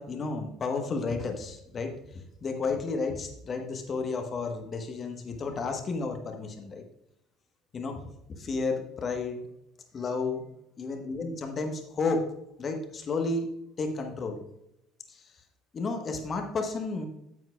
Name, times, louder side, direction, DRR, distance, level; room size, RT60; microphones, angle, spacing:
voice 1, 0.0-1.9 2.4-6.8 7.7-8.0 8.4-9.4 9.9-10.4 10.8-12.3 12.6-13.5 13.8-14.4 15.1-15.2 15.7-17.0, left 3 dB, 40° left, 5 dB, 1.2 m, -32 dB
9.3 x 7.9 x 2.3 m, 0.80 s
hypercardioid pair, 60°, 0 cm